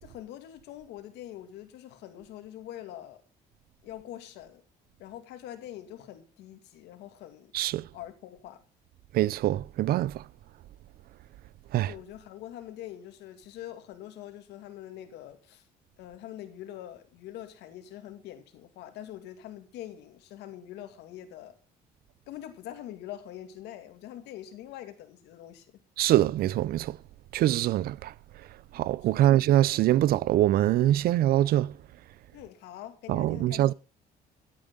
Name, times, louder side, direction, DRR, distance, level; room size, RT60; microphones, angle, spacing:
voice 1, 0.0-3.2 3.8-4.6 5.0-7.5 7.9-8.6 11.9-15.7 16.0-21.5 22.3-25.8 29.1-29.3 32.3-33.7, left 12 dB, 85° left, 2.4 m, -44 dB
voice 2, 7.5-7.9 9.1-10.2 11.7-11.9 26.0-27.0 27.3-28.5 28.7-31.8 33.1-33.7, right 13 dB, 65° right, 0.5 m, -24 dB
15.5 x 8.6 x 3.8 m
cardioid pair, 110°, 17 cm